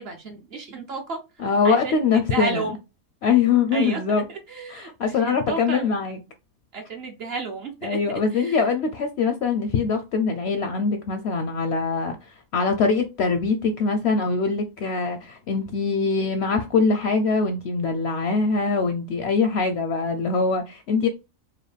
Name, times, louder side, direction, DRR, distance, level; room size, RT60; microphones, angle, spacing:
voice 1, 0.0-2.8 3.7-4.0 4.3-5.9 6.7-8.6, right 3 dB, 55° right, 0.8 m, -33 dB
voice 2, 1.4-2.7 3.2-4.2 4.7-6.2 7.8-21.1, left 4 dB, 65° left, 0.6 m, -23 dB
4.7 x 2.2 x 3.3 m
omnidirectional pair, 1.5 m